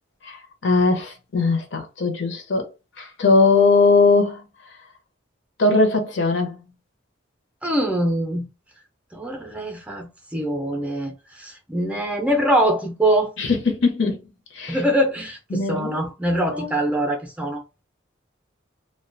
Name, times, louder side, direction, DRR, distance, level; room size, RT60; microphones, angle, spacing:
voice 1, 0.2-2.7 3.0-4.4 5.6-6.6 13.4-14.2 14.5-14.8 15.5-16.0 16.5-16.8, left 3 dB, 65° left, 0.7 m, -20 dB
voice 2, 7.6-8.5 9.1-13.3 14.7-17.6, right 1 dB, 5° right, 0.5 m, -23 dB
2.3 x 2.2 x 2.5 m
head